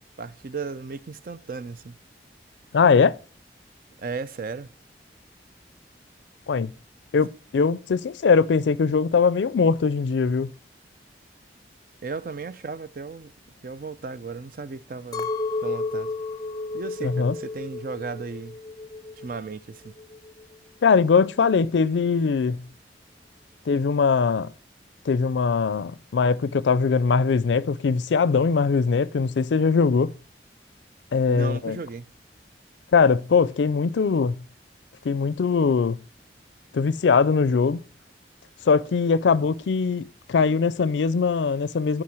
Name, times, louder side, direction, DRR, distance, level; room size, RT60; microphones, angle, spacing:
voice 1, 0.2-2.0 4.0-4.7 12.0-13.3 13.6-15.3 15.6-16.1 16.7-18.6 19.2-19.9 31.3-32.1, right 4 dB, 50° right, 0.5 m, -35 dB
voice 2, 2.7-3.1 6.5-6.7 7.1-10.5 17.0-17.3 20.8-22.6 23.7-24.5 25.1-30.1 31.1-31.8 32.9-34.4 35.0-36.0 36.7-37.8 38.7-42.0, left 5 dB, 85° left, 0.4 m, -21 dB
Chink clink, 15.1-19.5 19.7-20.6, left 3 dB, 20° left, 0.6 m, -32 dB
8.6 x 5.0 x 7.5 m
head